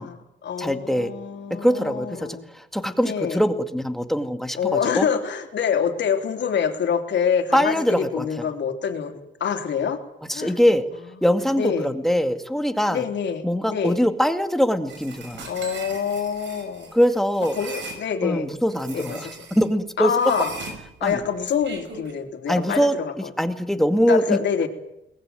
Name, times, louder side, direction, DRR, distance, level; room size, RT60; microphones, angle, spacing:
voice 1, 0.0-2.4 3.0-3.4 4.6-9.1 9.4-10.0 10.3-10.5 11.5-11.9 12.9-14.0 15.4-16.9 17.5-18.5 18.9-19.3 20.0-20.5 21.0-23.3 24.1-24.7, left 7 dB, 65° left, 5 dB, 3.4 m, -26 dB
voice 2, 0.6-1.1 1.5-5.1 7.5-8.5 10.3-10.8 11.2-13.0 13.4-15.5 16.9-17.6 18.2-20.1 21.0-21.2 22.5-24.4, equal, ahead, 7 dB, 2.2 m, -22 dB
sound 1, 14.9-18.0 18.7-19.7 20.1-22.1, right 3 dB, 65° right, 6.8 m, -39 dB
22.5 x 20.0 x 9.3 m, 0.86 s
cardioid pair, 90°, 20 cm